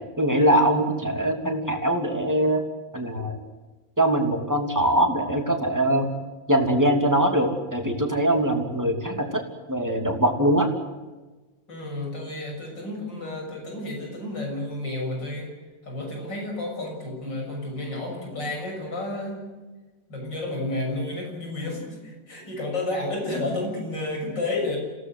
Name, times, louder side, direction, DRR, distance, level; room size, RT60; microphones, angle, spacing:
voice 1, 0.2-2.6 2.9-3.4 4.0-6.1 6.5-9.4 9.7-10.7, right 1 dB, 10° right, 3 dB, 2.9 m, -22 dB
voice 2, 11.7-15.5 15.8-19.5 20.1-24.8, left 2 dB, 75° left, 1 dB, 7.4 m, -31 dB
28.0 x 17.5 x 8.0 m, 1.2 s
omnidirectional pair, 2.0 m